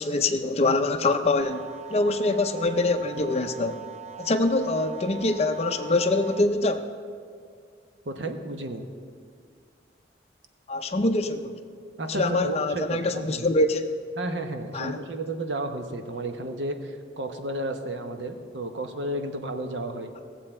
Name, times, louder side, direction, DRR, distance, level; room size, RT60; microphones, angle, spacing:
voice 1, 0.0-3.8 4.2-6.9 10.7-11.5 12.1-13.9 14.7-15.0, left 2 dB, 35° left, 7 dB, 0.5 m, -24 dB
sound 1, 1.4-6.4, right 7 dB, 40° right, 0.4 m, -42 dB
voice 2, 8.0-8.8 12.0-13.5 14.1-20.1, right 1 dB, 75° right, 6 dB, 0.9 m, -32 dB
18.0 x 7.5 x 4.4 m, 2.1 s
head